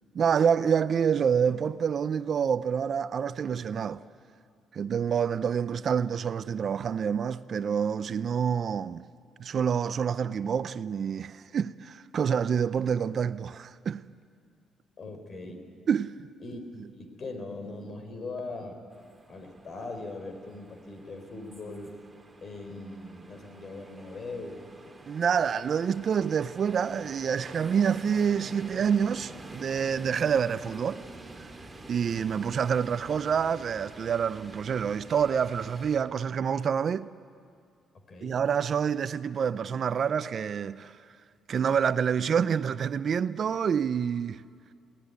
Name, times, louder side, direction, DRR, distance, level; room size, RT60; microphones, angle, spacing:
voice 1, 0.1-4.0 4.7-9.0 9.4-14.0 15.9-16.1 25.1-31.0 31.9-37.1 38.2-40.9 41.5-44.4, right 7 dB, 55° right, 0.5 m, -27 dB
voice 2, 15.0-15.6 16.4-16.6 16.9-18.8 19.3-22.0 22.4-24.7 38.1-38.4, left 2 dB, 45° left, 4.0 m, -40 dB
sound 1, 18.9-36.0, right 2 dB, 15° right, 2.7 m, -47 dB
22.5 x 17.5 x 9.6 m
cardioid pair, 90°, 0 cm